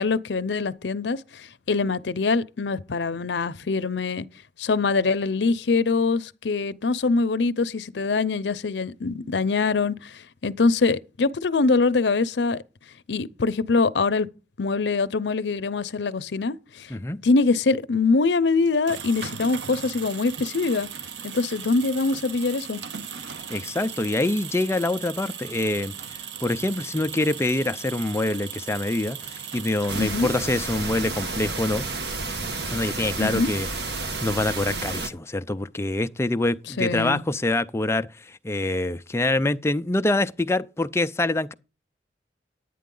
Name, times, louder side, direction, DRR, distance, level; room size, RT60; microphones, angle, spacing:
voice 1, 0.0-4.3 4.6-12.6 13.1-14.3 14.6-16.9 17.2-20.9 21.2-22.8 30.0-30.3 33.2-33.5 36.8-37.2, left 4 dB, 85° left, 0.6 m, -24 dB
sound 1, 18.7-30.5, right 7 dB, 90° right, 0.8 m, -38 dB
voice 2, 23.5-31.8 32.7-33.7 34.0-41.5, left 2 dB, 15° left, 0.4 m, -25 dB
sound 2, 29.9-35.1, right 3 dB, 65° right, 1.3 m, -31 dB
10.5 x 9.3 x 3.8 m
head